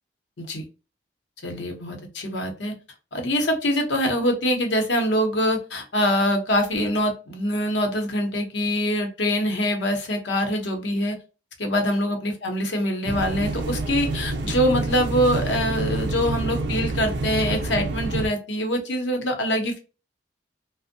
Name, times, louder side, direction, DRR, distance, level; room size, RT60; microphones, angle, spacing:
voice 1, 1.4-2.7 3.1-11.2 11.6-19.8, equal, 75° left, 3 dB, 0.7 m, -24 dB
sound 1, 13.1-18.3, right 2 dB, 65° right, 0.4 m, -27 dB
2.5 x 2.0 x 2.6 m, 0.33 s
head